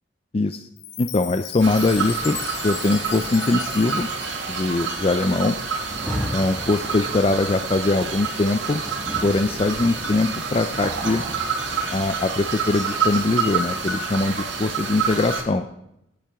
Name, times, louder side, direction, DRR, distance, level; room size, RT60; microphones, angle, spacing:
voice 1, 0.3-0.7 1.0-2.4 2.6-4.1 4.5-5.6 6.3-8.8 9.2-11.2 11.9-15.7, left 2 dB, 30° left, 8 dB, 0.4 m, -22 dB
Chime, 0.8-5.0, left 11 dB, 75° left, 0.8 m, -37 dB
sound 1, 1.6-15.4, right 5 dB, 80° right, 2.1 m, -28 dB
Rain, 5.8-14.8, equal, 10° left, 1.6 m, -37 dB
16.5 x 10.5 x 3.5 m, 0.84 s
head